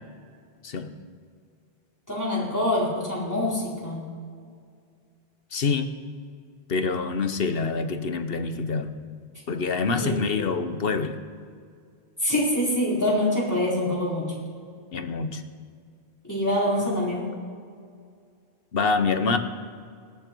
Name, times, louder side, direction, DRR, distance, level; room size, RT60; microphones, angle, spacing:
voice 1, 2.1-4.1 10.0-10.2 12.2-14.3 16.2-17.3, left 1 dB, 15° left, -6 dB, 4.5 m, -25 dB
voice 2, 5.5-5.9 6.7-8.9 9.5-11.2 14.9-15.4 18.7-19.4, left 4 dB, 65° left, 9 dB, 1.2 m, -26 dB
19.5 x 14.5 x 4.6 m, 2.2 s
omnidirectional pair, 1.1 m